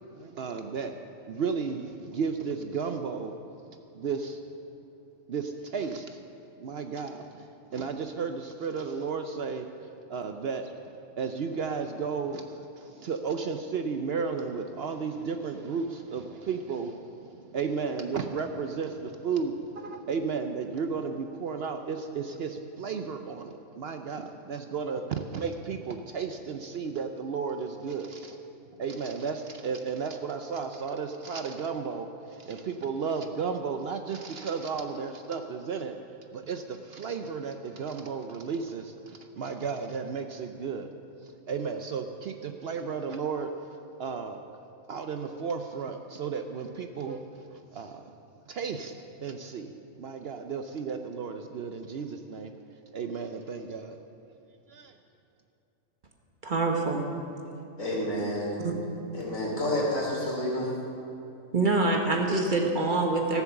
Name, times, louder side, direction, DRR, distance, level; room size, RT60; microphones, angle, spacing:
voice 1, 0.1-1.0 1.3-3.4 3.9-4.4 5.3-6.2 6.6-28.4 28.8-35.9 36.3-40.9 41.2-43.5 44.0-44.4 44.9-48.1 48.5-48.9 49.2-52.5 52.9-54.0 54.7-55.0, right 5 dB, 60° right, 6 dB, 0.7 m, -34 dB
voice 2, 56.4-57.1 58.6-58.7 61.5-63.4, right 3 dB, 40° right, 2 dB, 1.2 m, -25 dB
voice 3, 57.8-58.5 59.1-60.7, left 1 dB, 80° left, -4 dB, 3.4 m, -29 dB
14.5 x 7.1 x 7.0 m, 2.7 s
omnidirectional pair, 1.4 m